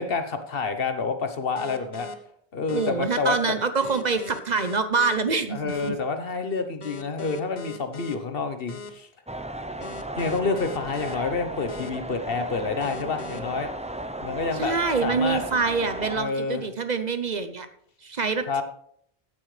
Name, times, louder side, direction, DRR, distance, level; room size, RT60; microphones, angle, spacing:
voice 1, 0.0-2.1 2.5-3.5 5.5-9.1 10.2-13.7 14.2-14.7 15.0-15.4 16.1-16.6 18.5-18.6, left 4 dB, 65° left, 8 dB, 1.2 m, -28 dB
sound 1, 1.6-2.1 2.7-2.9 3.8-5.2 5.7-5.9 6.8-8.2 8.7-8.9 9.8-11.2 11.7-11.9 12.8-13.4, left 4 dB, 45° left, 1.1 m, -40 dB
voice 2, 2.7-6.0 14.6-17.7 18.0-18.6, right 4 dB, 45° right, 10 dB, 0.8 m, -25 dB
sound 2, 9.3-16.2, right 1 dB, 10° right, 0.6 m, -35 dB
15.0 x 9.8 x 3.3 m, 0.68 s
omnidirectional pair, 1.1 m